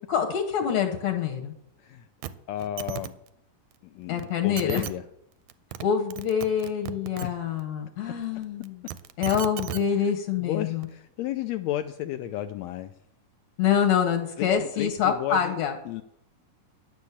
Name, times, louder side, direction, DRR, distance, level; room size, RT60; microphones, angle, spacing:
voice 1, 0.1-1.5 4.1-4.8 5.8-8.8 9.2-10.9 13.6-15.7, left 8 dB, 65° left, 3 dB, 2.3 m, -26 dB
sound 1, 2.2-2.3 2.6-3.1 4.2-4.3 4.6-4.9 5.5-5.8 6.1-7.3 8.6-9.8 10.8-10.9, right 12 dB, 80° right, 1.8 m, -34 dB
voice 2, 2.5-3.2 3.8-5.0 7.2-7.4 10.4-12.9 14.4-15.6 15.9-16.0, left 13 dB, 85° left, 9 dB, 1.5 m, -33 dB
11.5 x 6.4 x 8.4 m, 0.75 s
omnidirectional pair, 3.7 m